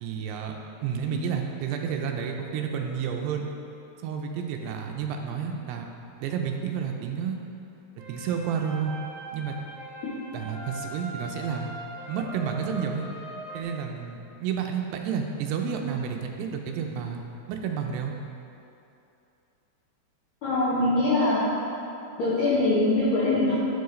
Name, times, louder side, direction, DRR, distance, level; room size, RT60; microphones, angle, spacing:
voice 1, 0.0-3.5 4.0-5.9 6.2-7.4 8.1-8.9 9.3-9.5 10.3-11.7 12.1-13.1 13.5-17.2 17.5-18.2, right 7 dB, 85° right, 3 dB, 2.6 m, -30 dB
sound 1, 8.0-13.6, right 1 dB, 70° right, 1.9 m, -41 dB
voice 2, 20.4-21.5 22.2-23.5, left 2 dB, 75° left, -9 dB, 1.6 m, -23 dB
9.8 x 4.6 x 3.1 m, 2.8 s
omnidirectional pair, 4.7 m